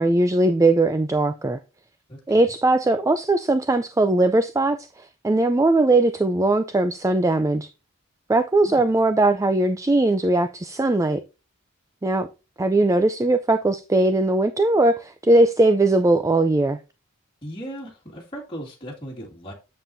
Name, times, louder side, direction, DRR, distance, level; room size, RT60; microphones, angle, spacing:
voice 1, 0.0-1.6 2.3-7.7 8.3-11.2 12.0-12.3 12.6-16.8, right 2 dB, 15° right, 0.4 m, -20 dB
voice 2, 2.1-2.5 8.6-8.8 17.4-19.5, equal, 25° left, 2.1 m, -37 dB
9.1 x 7.4 x 2.7 m
head